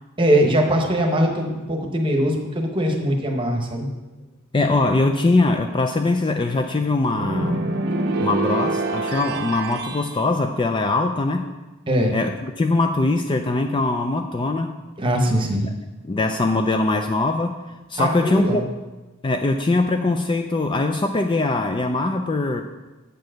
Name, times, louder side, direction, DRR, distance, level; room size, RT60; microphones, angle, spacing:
voice 1, 0.2-3.9 11.9-12.1 15.0-15.7 16.2-16.3 18.0-18.6, equal, 25° right, 2 dB, 1.0 m, -21 dB
voice 2, 4.5-7.6 8.2-11.5 12.1-14.8 16.0-17.6 17.9-18.6 19.2-22.6, left 2 dB, 20° left, 6 dB, 0.3 m, -22 dB
sound 1, 7.1-10.1, right 2 dB, 50° right, 0.6 m, -25 dB
8.2 x 4.6 x 6.3 m, 1.1 s
head